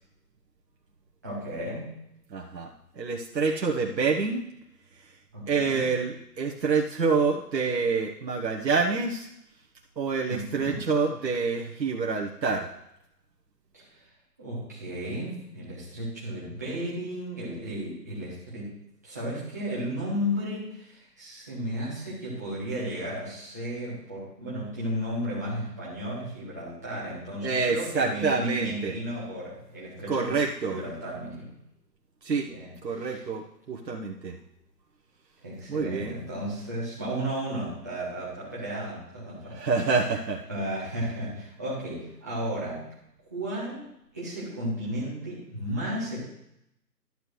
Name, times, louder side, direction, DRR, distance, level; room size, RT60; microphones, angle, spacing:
voice 1, 1.2-1.9 5.3-5.9 10.3-10.8 13.7-14.0 14.4-18.7 19.0-30.3 30.7-31.5 32.4-33.2 35.4-39.6 40.5-42.8 43.3-43.9 44.1-46.2, equal, 10° right, -8 dB, 1.1 m, -34 dB
voice 2, 2.3-4.4 5.5-9.3 10.0-12.7 27.4-28.9 30.1-30.8 32.2-32.5 32.8-34.4 35.7-36.1 39.5-40.4, right 4 dB, 85° right, 0 dB, 1.2 m, -27 dB
12.0 x 6.9 x 3.1 m, 0.80 s
hypercardioid pair, 170°, 50 cm